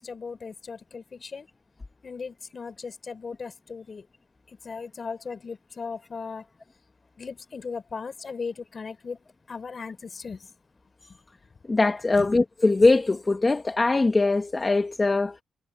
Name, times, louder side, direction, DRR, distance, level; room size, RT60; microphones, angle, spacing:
voice 1, 0.0-1.5 2.0-4.0 4.6-6.4 7.2-9.2 9.5-10.4 12.2-12.3, left 5 dB, 45° left, 5.2 m, -37 dB
voice 2, 11.7-15.4, left 3 dB, 25° left, 1.2 m, -21 dB
cardioid pair, 95°, 0 cm